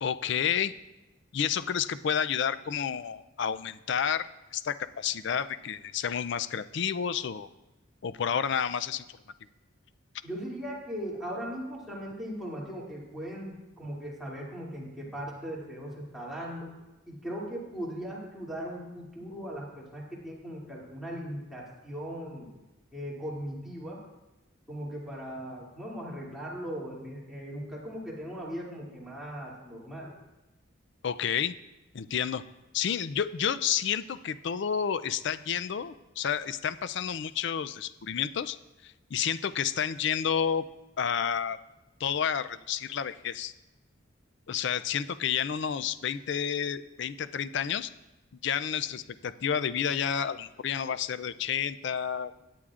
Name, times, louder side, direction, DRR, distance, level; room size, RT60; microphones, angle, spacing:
voice 1, 0.0-0.7 1.3-7.5 8.0-9.0 31.0-31.6 31.9-32.4 32.7-38.6 38.8-40.7 41.0-41.6 42.0-43.5 44.5-47.9 48.4-52.3, left 8 dB, 60° left, 14 dB, 0.4 m, -30 dB
voice 2, 10.2-16.7 17.1-22.5 22.9-24.0 24.7-30.1, equal, ahead, -6 dB, 2.6 m, -38 dB
17.0 x 9.3 x 2.5 m, 1.0 s
head